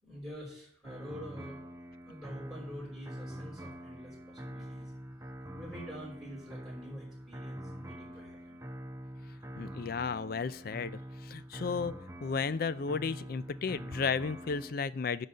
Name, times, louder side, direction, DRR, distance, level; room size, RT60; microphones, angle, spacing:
voice 1, 0.0-1.6 2.1-4.9 5.5-8.5, equal, ahead, -4 dB, 5.0 m, -46 dB
sound 1, 0.8-14.7, equal, 15° right, 0.6 m, -45 dB
voice 2, 9.6-10.9 11.3-11.9 12.2-15.3, left 5 dB, 50° left, 16 dB, 0.4 m, -33 dB
10.5 x 4.1 x 7.6 m, 0.63 s
head